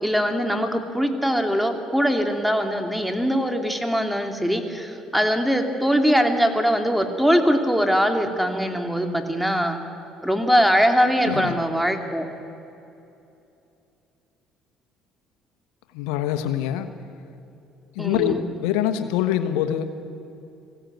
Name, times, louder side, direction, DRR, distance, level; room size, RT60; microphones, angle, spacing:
voice 1, 0.0-9.8 10.2-12.3 18.0-18.4, equal, ahead, 5 dB, 2.6 m, -22 dB
voice 2, 11.3-11.6 15.9-16.9 17.9-19.9, left 11 dB, 85° left, 9 dB, 1.2 m, -24 dB
21.0 x 16.0 x 9.2 m, 2.7 s
supercardioid pair, 75°, 0 cm